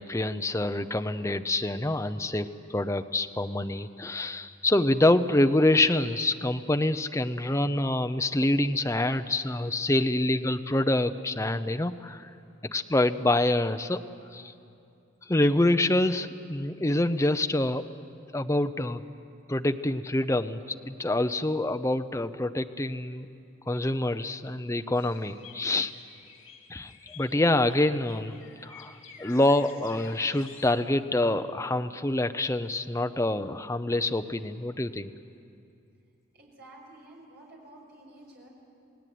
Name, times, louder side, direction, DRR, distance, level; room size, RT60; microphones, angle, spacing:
voice 1, 0.0-12.3 12.7-14.0 14.3-14.5 15.3-17.9 18.3-19.0 19.5-23.3 23.7-25.9 26.7-28.4 28.6-35.1, left 1 dB, 15° left, 8 dB, 0.6 m, -26 dB
sound 1, 24.9-30.7, left 7 dB, 85° left, 3.1 m, -51 dB
voice 2, 36.4-38.5, right 1 dB, 55° right, -2 dB, 6.4 m, -51 dB
27.5 x 18.5 x 9.3 m, 2.6 s
head